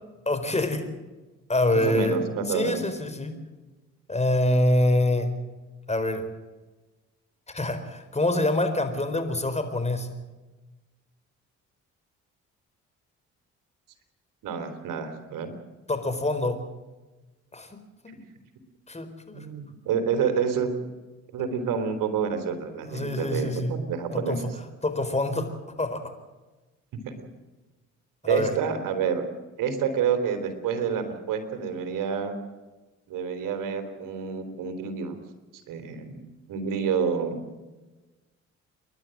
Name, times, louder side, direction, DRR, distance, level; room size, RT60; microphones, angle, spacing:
voice 1, 0.3-0.9 1.5-2.2 2.5-3.4 4.1-5.3 5.9-6.3 7.5-10.1 15.9-16.6 17.5-18.1 18.9-19.5 22.9-23.7 24.1-24.4 24.8-25.5 25.8-26.1 28.2-28.5, left 1 dB, 20° left, 8 dB, 4.3 m, -25 dB
voice 2, 1.7-2.8 14.4-15.5 19.3-20.7 21.3-24.4 28.2-29.2 29.6-32.3 33.1-35.2 35.5-36.2 36.5-37.4, right 7 dB, 80° right, 7 dB, 3.3 m, -28 dB
29.5 x 12.0 x 7.7 m, 1.2 s
supercardioid pair, 60°, 32 cm